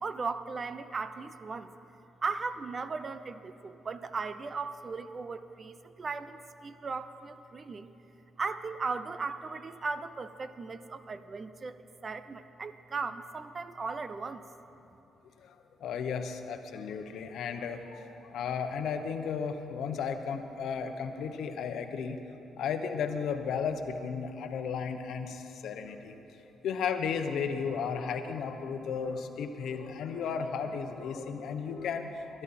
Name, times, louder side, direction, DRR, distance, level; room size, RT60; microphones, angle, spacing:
voice 1, 0.0-1.7 2.2-7.9 8.4-14.4, right 4 dB, 40° right, 12 dB, 0.6 m, -37 dB
voice 2, 15.4-22.2 22.6-32.4, left 6 dB, 75° left, 7 dB, 0.9 m, -34 dB
21.5 x 11.0 x 4.3 m, 3.0 s
cardioid pair, 85°, 0 cm